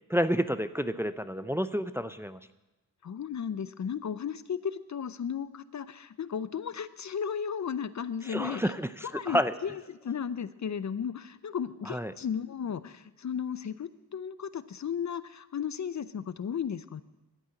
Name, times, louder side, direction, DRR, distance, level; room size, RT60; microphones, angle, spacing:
voice 1, 0.1-2.4 8.3-9.5 11.9-12.1, equal, 5° right, 12 dB, 0.5 m, -29 dB
voice 2, 3.0-8.7 9.1-17.0, left 7 dB, 50° left, 15 dB, 0.6 m, -35 dB
11.5 x 9.6 x 8.9 m, 0.99 s
wide cardioid pair, 100°, 36 cm